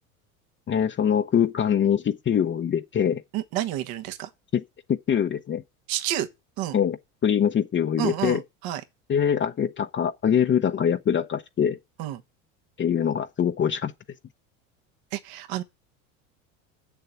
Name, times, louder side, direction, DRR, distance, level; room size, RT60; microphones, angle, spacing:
voice 1, 0.7-3.2 4.5-4.6 4.9-5.6 6.7-7.0 7.2-8.4 9.1-11.8 12.8-13.9, left 8 dB, 30° left, 0.8 m, -23 dB
voice 2, 3.3-4.3 5.9-6.3 6.6-6.8 8.0-8.8 12.0-12.2 15.1-15.6, right 13 dB, 60° right, 1.4 m, -29 dB
7.8 x 7.1 x 7.0 m
hypercardioid pair, 90°, 41 cm